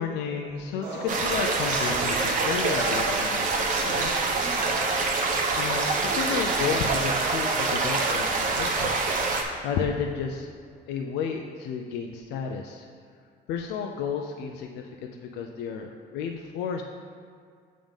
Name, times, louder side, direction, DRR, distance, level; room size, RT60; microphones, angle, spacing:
voice 1, 0.0-4.4 5.5-9.0 9.6-10.5 10.9-12.9 13.5-16.8, left 6 dB, 85° left, 2 dB, 0.5 m, -32 dB
sound 1, 0.8-8.8, right 2 dB, 90° right, 1.7 m, -36 dB
sound 2, 1.1-9.4, right 3 dB, 50° right, 0.9 m, -26 dB
7.1 x 3.8 x 5.3 m, 2.2 s
cardioid pair, 110°, 17 cm